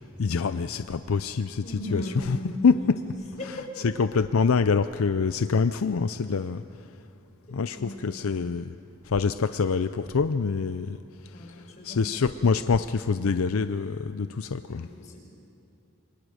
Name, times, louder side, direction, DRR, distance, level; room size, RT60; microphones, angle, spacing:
voice 1, 0.2-1.6 1.9-2.4 2.6-3.0 3.5-3.6 3.8-6.6 7.5-8.7 9.1-11.0 11.8-14.9, left 5 dB, 75° left, 11 dB, 0.5 m, -25 dB
voice 2, 1.6-2.9 3.4-3.6 7.8-8.0 11.3-12.1 14.7-15.2, left 1 dB, 35° left, -2 dB, 6.0 m, -37 dB
27.5 x 24.0 x 6.4 m, 2.6 s
head